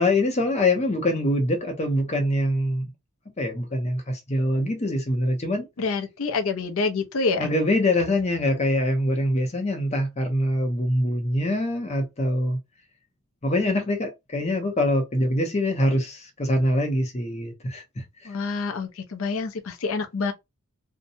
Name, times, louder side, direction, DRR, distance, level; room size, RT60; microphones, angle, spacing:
voice 1, 0.0-2.9 3.4-5.7 7.4-12.6 13.4-18.0, left 1 dB, 30° left, 0.6 m, -24 dB
voice 2, 5.8-7.5 18.3-20.3, left 4 dB, 75° left, 0.6 m, -27 dB
2.7 x 2.2 x 2.6 m
head